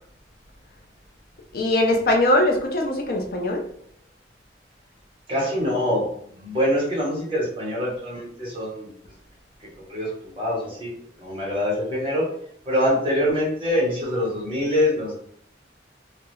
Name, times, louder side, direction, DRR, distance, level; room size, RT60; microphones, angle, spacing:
voice 1, 1.5-3.6, left 1 dB, 50° left, 1 dB, 0.4 m, -21 dB
voice 2, 5.3-8.9 9.9-10.9 11.2-12.3 12.6-15.1, left 1 dB, 30° right, -5 dB, 1.0 m, -24 dB
2.3 x 2.1 x 3.0 m, 0.64 s
head